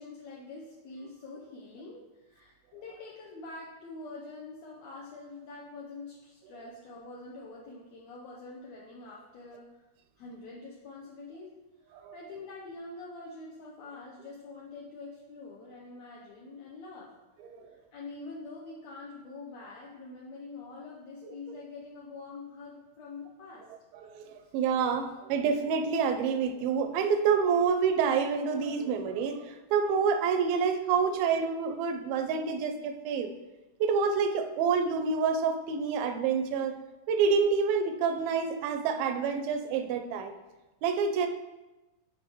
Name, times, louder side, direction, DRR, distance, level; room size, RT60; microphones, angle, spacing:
voice 1, 0.0-9.8 10.2-17.1 17.6-23.6 24.4-24.5 25.0-25.1, left 3 dB, 80° left, -4 dB, 1.5 m, -45 dB
voice 2, 23.9-33.3 33.8-36.8 37.1-40.3 40.8-41.3, right 6 dB, 90° right, 7 dB, 2.4 m, -28 dB
10.5 x 4.0 x 3.0 m, 1.1 s
omnidirectional pair, 4.1 m